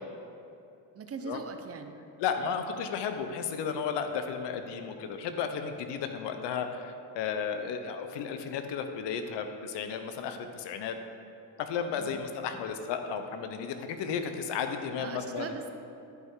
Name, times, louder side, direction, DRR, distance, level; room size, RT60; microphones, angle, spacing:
voice 1, 0.9-2.0 11.9-12.6 15.0-15.7, right 5 dB, 35° right, 6 dB, 0.6 m, -41 dB
voice 2, 2.2-11.0 11.6-15.5, left 6 dB, 80° left, 7 dB, 0.8 m, -34 dB
11.0 x 5.6 x 3.7 m, 2.7 s
cardioid pair, 100°, 42 cm